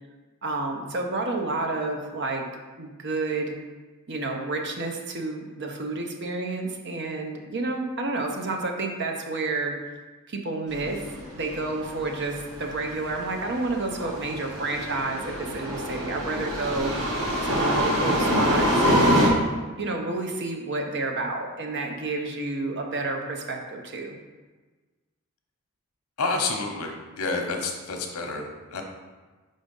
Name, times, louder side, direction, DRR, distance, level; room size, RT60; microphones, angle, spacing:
voice 1, 0.4-2.4 2.8-3.5 4.1-9.7 10.3-11.0 11.3-17.0 17.4-19.2 19.8-24.2, right 2 dB, 50° right, 2 dB, 0.8 m, -30 dB
sound 1, 10.8-19.3, equal, 85° right, 1.6 m, -25 dB
voice 2, 26.2-28.8, left 3 dB, 90° left, 3 dB, 0.9 m, -29 dB
5.0 x 3.7 x 5.3 m, 1.3 s
head